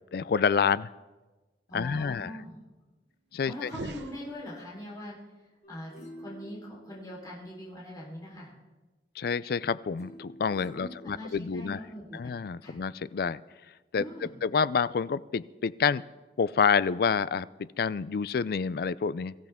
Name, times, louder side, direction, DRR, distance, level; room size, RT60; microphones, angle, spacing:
voice 1, 0.1-0.9 1.7-2.3 3.3-3.7 9.2-11.8 12.1-13.4 13.9-16.0 16.4-19.3, left 6 dB, 60° left, 18 dB, 0.4 m, -28 dB
voice 2, 1.7-2.6 3.4-5.2 5.7-8.5 10.7-12.8 13.9-14.3, left 1 dB, 20° left, -5 dB, 3.9 m, -42 dB
sound 1, 3.6-4.9, right 2 dB, 85° right, 0.9 m, -42 dB
sound 2, 5.6-7.9 10.0-12.0 12.5-12.6, equal, 40° left, 2.5 m, -50 dB
23.0 x 14.0 x 3.6 m, 1.2 s
head